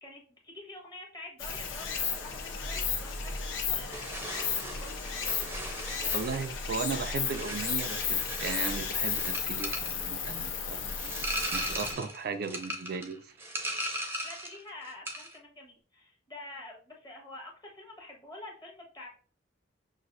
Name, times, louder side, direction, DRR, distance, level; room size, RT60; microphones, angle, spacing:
voice 1, 0.0-5.5 6.0-6.8 14.2-19.1, left 2 dB, 25° left, 1.3 m, -48 dB
Stream, 1.4-11.9, left 6 dB, 80° left, 0.8 m, -34 dB
sound 1, 3.9-14.6 14.9-15.4, right 1 dB, 15° right, 0.7 m, -38 dB
voice 2, 6.1-11.1 11.5-13.3, right 5 dB, 55° right, 0.4 m, -36 dB
6.0 x 2.6 x 2.5 m
head